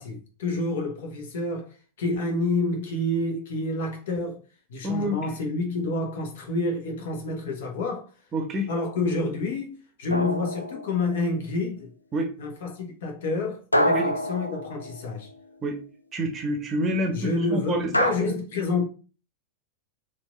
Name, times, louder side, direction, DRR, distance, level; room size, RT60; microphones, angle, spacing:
voice 1, 0.0-4.4 4.7-8.1 8.7-11.9 12.4-15.3 17.1-18.8, left 2 dB, 55° left, 1.0 m, -28 dB
voice 2, 4.8-5.2 8.3-8.7 10.1-10.2 12.1-12.3 13.9-14.0 15.6-15.8 16.1-18.4, right 1 dB, 25° right, 0.8 m, -28 dB
sound 1, 10.1-11.3 13.7-15.4 17.9-18.1, equal, 85° left, 0.3 m, -26 dB
4.3 x 2.5 x 2.5 m
figure-of-eight pair, 90°, 0 cm